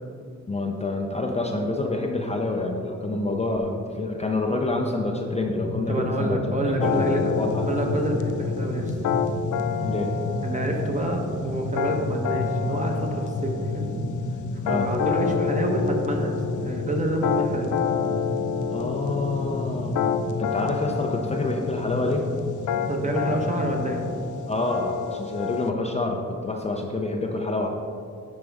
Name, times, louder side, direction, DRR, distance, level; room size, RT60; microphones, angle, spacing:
voice 1, 0.5-7.7 9.8-10.1 14.6-14.9 18.7-22.3 24.5-27.7, left 2 dB, 20° left, 1 dB, 0.6 m, -27 dB
sound 1, 5.6-24.2, left 2 dB, 55° left, 0.9 m, -31 dB
voice 2, 5.9-7.3 7.6-9.0 10.4-13.9 14.5-17.8 22.9-24.0, right 2 dB, 25° right, 1 dB, 1.0 m, -28 dB
sound 2, 6.8-25.7, left 8 dB, 85° left, 0.5 m, -29 dB
9.7 x 5.1 x 3.5 m, 2.3 s
wide cardioid pair, 130°, 30 cm